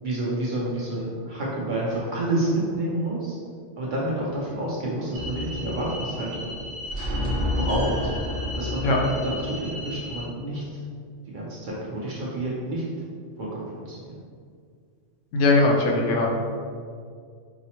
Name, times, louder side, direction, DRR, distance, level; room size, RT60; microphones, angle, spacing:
voice 1, 0.0-3.3 3.8-6.5 7.4-8.0 8.6-10.6 11.3-12.8 13.4-14.2, right 1 dB, 55° right, -5 dB, 0.6 m, -29 dB
sound 1, 5.1-10.2, left 1 dB, 70° right, 1.1 m, -30 dB
voice 2, 15.3-16.3, left 2 dB, 80° left, 1 dB, 0.9 m, -20 dB
4.7 x 2.0 x 2.8 m, 2.1 s
omnidirectional pair, 1.3 m